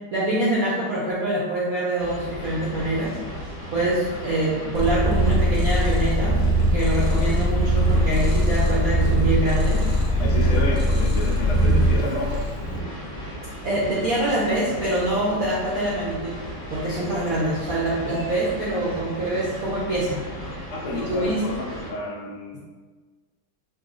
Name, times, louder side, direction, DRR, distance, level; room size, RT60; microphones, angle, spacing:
voice 1, 0.1-3.2 3.7-6.4 6.7-9.9 11.6-11.8 13.6-16.4 16.7-20.3 20.9-21.4, right 1 dB, 65° right, -7 dB, 0.9 m, -25 dB
sound 1, 2.0-21.9, equal, 30° left, 1.1 m, -36 dB
Purr, 4.7-12.8, equal, 60° left, 1.0 m, -21 dB
voice 2, 10.2-12.3 20.7-22.6, left 2 dB, 85° left, -3 dB, 1.6 m, -30 dB
5.6 x 2.3 x 2.5 m, 1.4 s
omnidirectional pair, 2.2 m